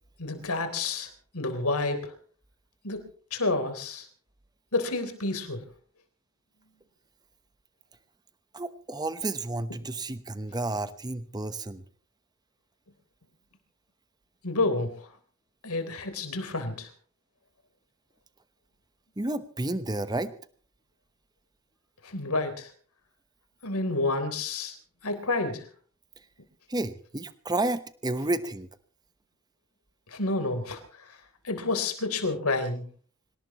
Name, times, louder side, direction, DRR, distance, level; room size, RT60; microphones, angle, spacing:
voice 1, 0.2-1.1 1.3-2.1 2.8-3.0 3.3-4.1 4.7-5.6 14.4-14.9 15.6-16.9 22.0-22.7 23.6-24.7 25.0-25.6 30.1-30.8 31.4-32.8, left 3 dB, 80° left, 7 dB, 3.7 m, -29 dB
voice 2, 8.5-11.8 19.2-20.3 26.7-28.7, right 2 dB, 20° right, 12 dB, 1.0 m, -31 dB
26.0 x 18.0 x 3.1 m, 0.44 s
head